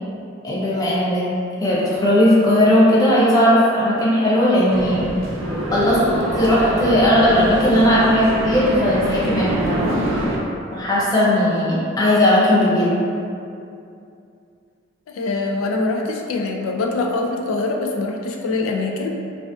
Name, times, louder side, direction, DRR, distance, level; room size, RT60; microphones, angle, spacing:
voice 1, 0.4-1.2 1.6-5.1 5.7-6.0 6.4-10.0 10.7-13.0, left 1 dB, 20° left, -7 dB, 0.5 m, -17 dB
sound 1, 4.7-10.4, right 1 dB, 70° right, 0.4 m, -25 dB
voice 2, 15.1-19.1, left 3 dB, 85° left, 3 dB, 0.3 m, -23 dB
2.4 x 2.4 x 2.2 m, 2.5 s
head